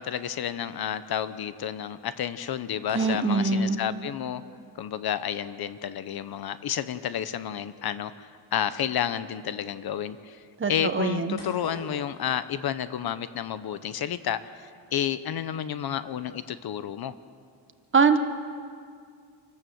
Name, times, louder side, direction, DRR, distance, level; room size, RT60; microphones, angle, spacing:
voice 1, 0.0-4.4 4.8-10.4 10.7-17.2, left 9 dB, 55° left, 13 dB, 0.9 m, -31 dB
sound 1, 1.0-1.7 2.0-2.3 2.8-3.9 4.5-13.2 13.5-14.1 14.5-14.6, left 1 dB, 75° left, 7.2 m, -50 dB
voice 2, 2.9-3.8 10.6-11.4 17.9-18.2, right 4 dB, 25° right, 8 dB, 1.3 m, -23 dB
27.5 x 12.5 x 7.9 m, 2.1 s
cardioid pair, 115°, 44 cm